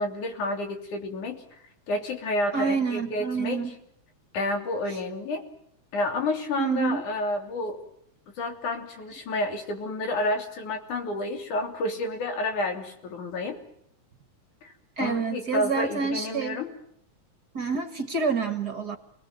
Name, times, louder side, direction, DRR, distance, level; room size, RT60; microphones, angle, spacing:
voice 1, 0.0-1.4 1.9-3.6 4.3-5.5 5.9-7.8 8.4-13.6 14.6-16.7, left 2 dB, 90° left, 5 dB, 4.7 m, -30 dB
voice 2, 2.5-3.7 4.9-5.0 6.6-7.0 15.0-16.6 17.5-19.0, right 5 dB, 40° right, 9 dB, 1.9 m, -28 dB
29.5 x 19.5 x 9.4 m, 0.71 s
omnidirectional pair, 3.4 m